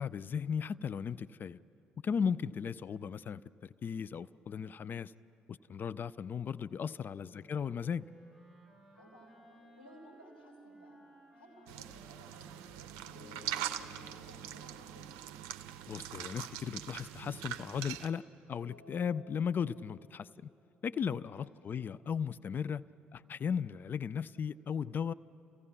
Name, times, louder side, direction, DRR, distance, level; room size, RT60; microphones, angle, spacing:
voice 1, 0.0-1.6 2.0-5.1 5.5-8.1 15.9-18.2 18.5-20.5 20.8-22.8 23.1-25.1, left 7 dB, 40° left, 17 dB, 0.4 m, -36 dB
voice 2, 7.1-7.7 9.0-9.3 9.8-11.0 11.3-15.1 21.4-21.7, equal, 90° left, 0 dB, 3.1 m, -58 dB
Wind instrument woodwind instrument, 7.2-14.5, right 1 dB, 5° left, 5.9 m, -59 dB
sound 1, 9.5-11.0 13.0-16.2 18.5-19.9, left 4 dB, 65° left, 3.3 m, -60 dB
sound 2, 11.7-18.1, right 11 dB, 65° right, 0.6 m, -42 dB
29.5 x 16.0 x 5.9 m, 2.9 s
figure-of-eight pair, 50°, 5 cm